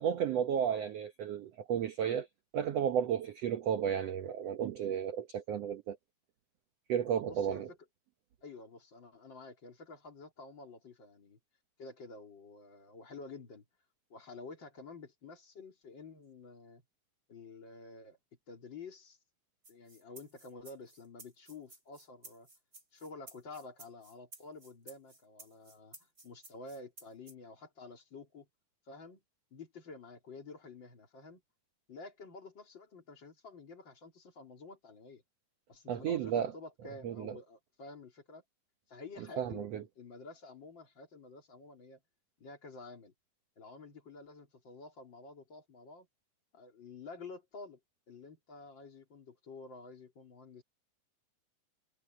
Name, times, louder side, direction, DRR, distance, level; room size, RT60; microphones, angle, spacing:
voice 1, 0.0-2.3 2.5-6.0 6.9-7.7 35.9-36.5 37.0-37.3 39.4-39.8, right 8 dB, 85° right, 1.4 m, -33 dB
voice 2, 7.2-7.8 8.4-11.4 11.8-13.6 14.1-16.8 17.3-18.2 18.5-19.2 19.7-22.5 22.9-28.5 28.9-29.2 29.5-31.4 31.9-35.2 35.7-38.4 38.9-42.0 42.4-43.1 43.6-46.1 46.5-47.8 48.1-50.6, left 3 dB, 30° left, 3.5 m, -50 dB
sound 1, 19.6-27.3, right 2 dB, 25° right, 7.5 m, -55 dB
omnidirectional pair, 4.3 m